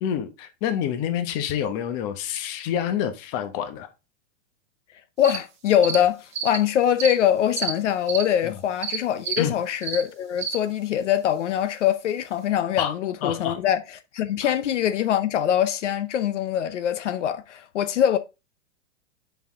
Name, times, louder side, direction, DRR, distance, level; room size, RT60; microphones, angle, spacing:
voice 1, 0.0-3.9 8.4-8.6 9.4-9.5 12.8-12.9 13.2-13.6 14.4-14.5, left 9 dB, 30° left, 1.1 m, -27 dB
voice 2, 5.2-18.2, left 10 dB, 75° left, 0.8 m, -23 dB
sound 1, 5.2-5.4 5.8-6.0 6.3-6.6 7.0-7.1 7.6-7.7 8.1-8.2 8.8-9.0 9.2-9.4 9.8-10.0 10.4-10.6, right 7 dB, 20° right, 1.2 m, -28 dB
7.0 x 5.8 x 3.6 m
hypercardioid pair, 150°, 37 cm